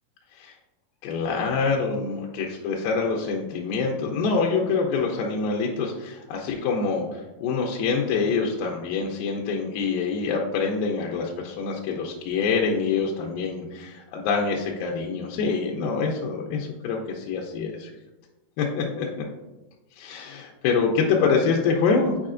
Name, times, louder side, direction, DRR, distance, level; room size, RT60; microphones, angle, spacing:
voice 1, 1.0-17.9 18.6-19.2 20.0-22.2, left 5 dB, 80° left, 0 dB, 2.2 m, -25 dB
8.7 x 4.8 x 2.5 m, 1.1 s
omnidirectional pair, 4.6 m